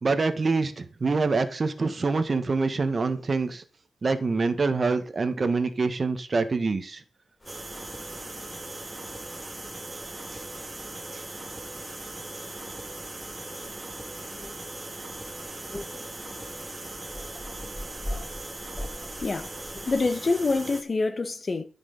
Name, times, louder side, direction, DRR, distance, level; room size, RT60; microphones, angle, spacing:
voice 1, 0.0-3.6 4.0-7.0 10.3-10.4 11.1-11.2, right 4 dB, 45° right, 1.5 m, -25 dB
sound 1, 7.4-20.0, left 1 dB, 20° left, 5.9 m, -44 dB
sound 2, 7.5-20.8, right 2 dB, 25° right, 2.2 m, -39 dB
voice 2, 19.2-19.6 19.9-21.6, left 3 dB, 45° left, 1.4 m, -26 dB
14.5 x 6.0 x 4.1 m
cardioid pair, 80°, 0 cm